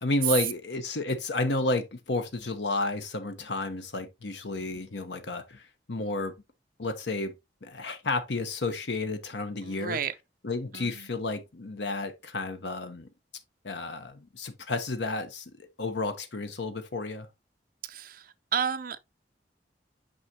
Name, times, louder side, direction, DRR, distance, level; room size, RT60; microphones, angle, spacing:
voice 1, 0.0-6.3 6.8-7.3 7.6-10.0 10.4-13.1 13.6-17.3, left 2 dB, 80° left, 0.9 m, -31 dB
voice 2, 9.6-10.1 10.7-11.1 17.8-19.0, right 7 dB, 50° right, 0.6 m, -32 dB
6.3 x 5.6 x 2.8 m
head